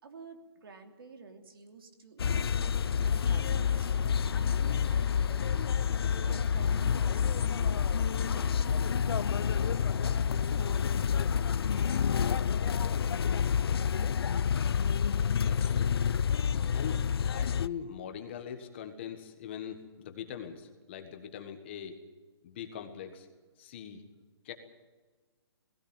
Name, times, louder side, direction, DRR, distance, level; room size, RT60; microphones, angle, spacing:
voice 1, 0.0-6.0 6.2-7.8 8.2-9.4 9.7-12.0, right 4 dB, 60° right, 5 dB, 3.0 m, -51 dB
sound 1, 2.2-17.7, left 7 dB, 65° left, 0.6 m, -28 dB
sound 2, 2.8-10.8, left 2 dB, 10° right, 4.6 m, -48 dB
voice 2, 15.4-15.9 16.7-17.0 17.3-22.0 22.4-23.3 23.6-24.0 24.4-24.5, left 8 dB, 25° left, 6 dB, 1.5 m, -42 dB
19.0 x 17.0 x 8.9 m, 1.3 s
hypercardioid pair, 175°, 14 cm